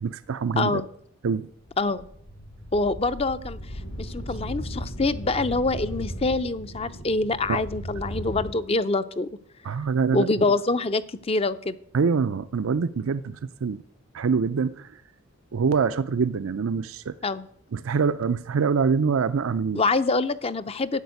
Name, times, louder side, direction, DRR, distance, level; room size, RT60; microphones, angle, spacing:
voice 1, 0.0-0.8 1.2-1.5 7.5-7.6 9.6-10.3 11.9-13.8 14.1-14.9 15.5-17.1 17.7-19.8, right 5 dB, 75° right, 0.5 m, -25 dB
sound 1, 1.7-8.5, equal, 70° left, 2.0 m, -36 dB
voice 2, 2.7-3.6 4.0-9.3 10.1-11.8 17.2-17.5 19.7-21.0, left 3 dB, 30° left, 0.5 m, -25 dB
12.0 x 7.2 x 9.5 m
head